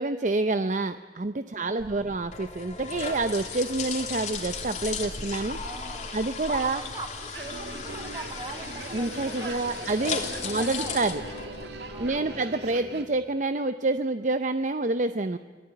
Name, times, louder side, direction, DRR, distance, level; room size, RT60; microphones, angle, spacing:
voice 1, 0.0-5.6 6.1-6.8 8.9-11.2 12.0-15.4, right 2 dB, 45° right, 10 dB, 0.7 m, -28 dB
voice 2, 1.5-2.1 5.6-6.2 6.5-11.0 11.9-12.5, right 2 dB, 25° right, 5 dB, 2.4 m, -42 dB
sound 1, 1.8-12.2, left 5 dB, 45° left, 3.0 m, -36 dB
sound 2, 7.3-13.0, right 3 dB, 75° right, 2.4 m, -41 dB
Wind instrument woodwind instrument, 9.0-14.2, left 5 dB, 80° left, 1.3 m, -46 dB
26.0 x 19.5 x 9.9 m, 1.4 s
head